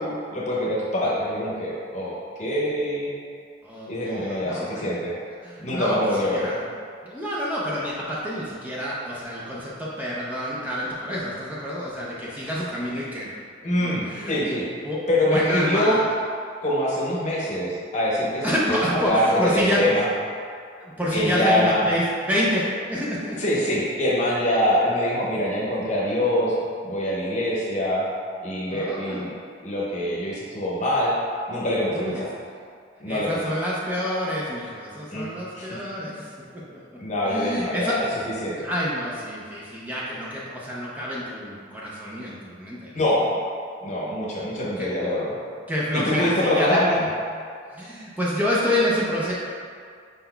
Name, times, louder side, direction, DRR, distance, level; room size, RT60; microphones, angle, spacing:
voice 1, 0.0-2.1 2.4-3.1 3.9-5.2 5.6-6.5 13.6-14.7 15.1-16.0 16.6-20.1 21.1-21.8 23.4-26.6 26.8-28.1 28.4-29.3 29.6-31.2 31.5-32.3 33.0-33.4 35.1-35.8 37.0-38.0 38.4-38.5 42.9-43.3 43.8-45.4 45.9-47.1, left 1 dB, 40° left, -5 dB, 0.8 m, -24 dB
voice 2, 3.6-4.9 5.4-6.7 7.0-13.3 13.8-14.4 14.6-16.1 18.4-20.0 20.8-23.5 28.7-29.2 31.9-32.3 33.1-37.0 37.2-38.1 38.6-43.0 44.8-44.9 45.7-46.8 47.7-49.3, equal, 10° right, -7 dB, 0.5 m, -28 dB
5.3 x 4.0 x 2.2 m, 2.2 s
head